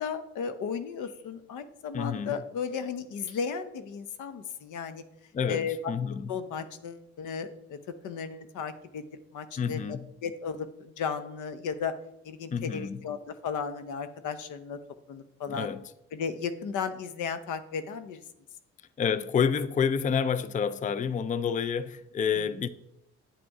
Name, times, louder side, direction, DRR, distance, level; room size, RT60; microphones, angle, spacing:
voice 1, 0.0-5.0 5.5-5.9 6.3-7.8 8.0-9.0 9.3-11.9 12.2-14.8 15.1-15.7 16.1-18.2 22.4-22.5, left 6 dB, 80° left, 0.9 m, -35 dB
voice 2, 1.9-2.4 5.3-6.3 9.6-10.1 12.5-13.0 15.5-15.8 19.0-22.7, left 7 dB, 25° left, 0.4 m, -29 dB
9.7 x 6.3 x 4.8 m
cardioid pair, 90°, 30 cm